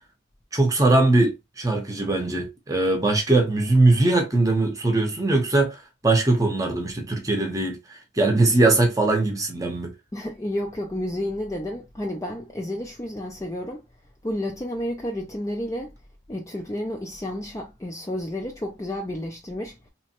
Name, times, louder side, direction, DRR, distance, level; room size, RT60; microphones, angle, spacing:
voice 1, 0.5-9.9, right 2 dB, 20° right, 0.7 m, -21 dB
voice 2, 10.1-13.8 14.2-15.9 16.3-19.9, left 1 dB, 15° left, 0.3 m, -31 dB
3.0 x 2.2 x 2.9 m
head